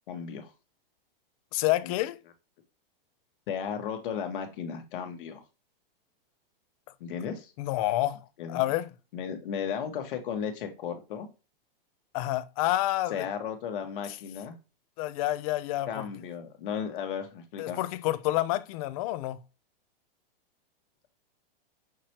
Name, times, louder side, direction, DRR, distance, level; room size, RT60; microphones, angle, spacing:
voice 1, 0.1-0.5 1.8-1.9 3.5-5.4 7.0-7.5 8.4-8.7 9.1-11.3 13.1-14.5 15.9-17.8, left 7 dB, 60° left, 1.3 m, -35 dB
voice 2, 1.5-2.2 7.6-8.2 8.5-8.9 12.1-13.1 15.0-16.1 17.6-19.4, left 16 dB, 40° left, 0.4 m, -28 dB
5.8 x 3.2 x 2.8 m
hypercardioid pair, 135°, 29 cm